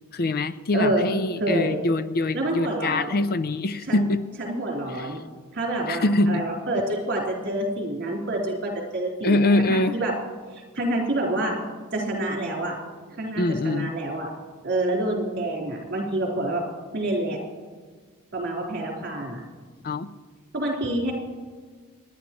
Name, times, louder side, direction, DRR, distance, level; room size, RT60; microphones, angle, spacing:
voice 1, 0.1-4.2 4.9-5.1 5.9-6.4 9.2-10.0 13.4-13.9 19.8-20.1, left 2 dB, 45° left, 12 dB, 0.5 m, -24 dB
voice 2, 0.7-1.1 1.4-1.8 2.3-3.2 3.9-4.0 4.4-5.2 5.5-10.1 10.5-11.6 11.9-12.7 13.1-14.3 14.6-16.6 16.9-17.4 18.3-19.4 20.5-21.1, right 1 dB, 50° right, -2 dB, 4.2 m, -27 dB
27.5 x 11.0 x 3.1 m, 1.5 s
head